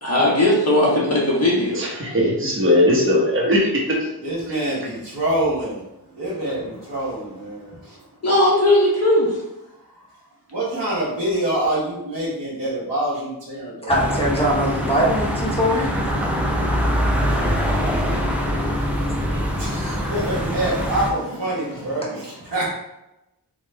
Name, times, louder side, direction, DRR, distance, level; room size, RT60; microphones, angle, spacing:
voice 1, 0.0-2.1 8.2-9.4 19.2-19.5, left 1 dB, 35° left, -5 dB, 1.4 m, -18 dB
voice 2, 1.7-4.1, left 1 dB, 30° right, -4 dB, 1.0 m, -19 dB
voice 3, 4.2-8.1 9.7-10.2 10.5-14.6 18.6-22.7, right 1 dB, 85° right, -9 dB, 1.3 m, -26 dB
voice 4, 13.8-15.9, equal, 15° left, -3 dB, 1.1 m, -21 dB
sound 1, 13.9-21.1, equal, 5° right, 0.6 m, -23 dB
3.5 x 2.4 x 3.3 m, 0.91 s
wide cardioid pair, 75°, 42 cm